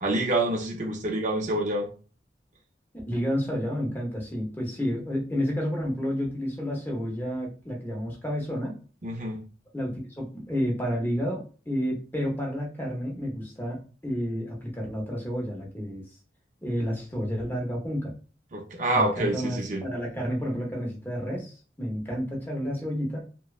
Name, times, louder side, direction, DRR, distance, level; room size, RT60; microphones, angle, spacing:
voice 1, 0.0-1.9 9.0-9.4 18.5-19.8, right 2 dB, 40° right, 1 dB, 0.5 m, -27 dB
voice 2, 3.1-8.7 9.7-16.0 16.6-18.1 18.9-23.2, equal, 10° left, -1 dB, 0.7 m, -30 dB
3.0 x 2.0 x 2.3 m, 0.37 s
head